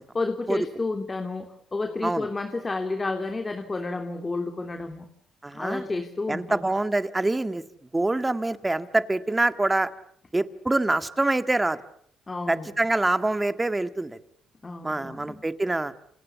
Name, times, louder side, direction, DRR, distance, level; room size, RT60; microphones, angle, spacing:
voice 1, 0.1-5.1 5.5-6.6 12.3-12.7 14.6-15.4, left 3 dB, 25° left, 6 dB, 3.1 m, -31 dB
voice 2, 5.4-5.9 6.3-7.6 7.9-9.9 10.3-11.8 12.5-14.2 14.8-15.9, right 2 dB, 15° right, 11 dB, 1.9 m, -25 dB
28.5 x 27.5 x 7.1 m, 0.67 s
cardioid pair, 90°, 0 cm